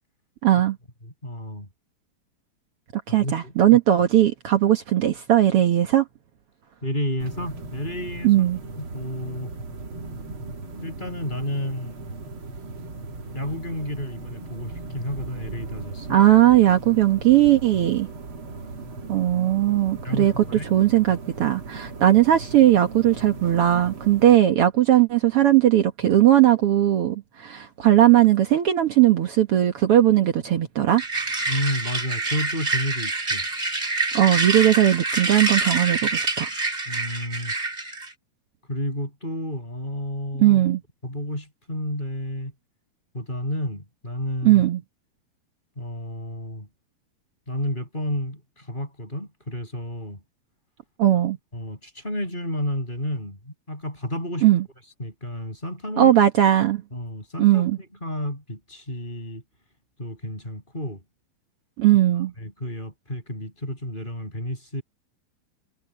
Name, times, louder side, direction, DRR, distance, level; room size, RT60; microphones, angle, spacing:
voice 1, 0.4-0.8 3.1-6.0 8.2-8.6 16.1-18.1 19.1-20.4 20.7-31.0 34.1-36.5 40.4-40.8 44.4-44.8 51.0-51.4 54.4-54.6 56.0-56.8 57.4-57.8 61.8-62.3, right 12 dB, 85° right, 1.2 m, -18 dB
voice 2, 1.0-1.7 3.1-3.8 6.8-8.3 8.8-9.5 10.8-12.0 13.3-16.2 20.0-20.7 31.5-33.5 36.9-37.5 38.7-40.6 41.0-42.5 43.1-44.7 45.8-46.7 47.5-50.2 51.5-54.5 55.0-56.1 56.9-57.7 58.0-59.4 60.0-61.0 62.4-64.8, left 1 dB, 10° left, 7.4 m, -31 dB
sound 1, 7.2-24.4, right 3 dB, 40° right, 2.4 m, -37 dB
sound 2, 31.0-38.1, right 3 dB, 20° right, 1.6 m, -26 dB
omnidirectional pair, 4.6 m